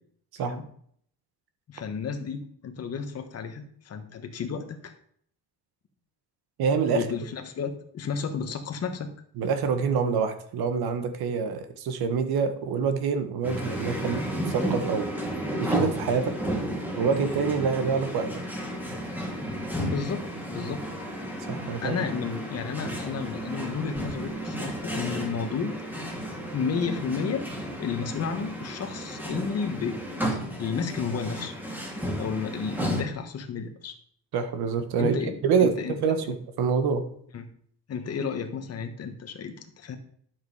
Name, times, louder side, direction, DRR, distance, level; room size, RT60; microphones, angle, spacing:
voice 1, 1.7-4.9 6.9-9.1 19.7-20.9 21.8-25.7 26.5-27.5 27.8-30.0 30.6-31.5 32.2-33.9 35.0-36.0 36.2-36.4 37.3-37.5 37.9-40.0, left 6 dB, 40° left, 6 dB, 1.4 m, -32 dB
voice 2, 6.6-7.0 9.4-15.1 15.6-16.4 17.0-18.3 21.5-22.0 34.3-35.2 35.4-35.7 36.0-37.0, right 6 dB, 80° right, 8 dB, 1.6 m, -26 dB
sound 1, 13.4-33.0, right 1 dB, 5° right, 2.3 m, -33 dB
11.0 x 7.7 x 4.9 m, 0.63 s
cardioid pair, 160°, 37 cm